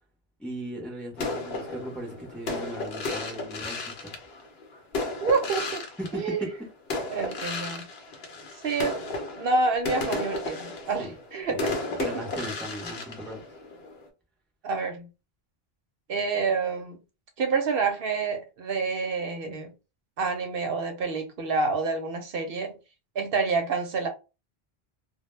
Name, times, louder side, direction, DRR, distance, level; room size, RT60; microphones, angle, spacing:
voice 1, 0.4-4.1 6.0-6.5 11.0-11.1 11.5-13.4, right 1 dB, ahead, 0.6 m, -38 dB
sound 1, 1.2-6.6 6.9-14.1, left 2 dB, 75° left, 0.9 m, -34 dB
voice 2, 5.2-5.9 6.1-6.5 7.1-7.9 8.6-9.0 9.4-12.1 14.6-15.1 16.1-17.0 17.4-19.7 20.2-22.7 23.1-24.1, right 4 dB, 70° right, 0.8 m, -28 dB
2.1 x 2.1 x 3.0 m
omnidirectional pair, 1.0 m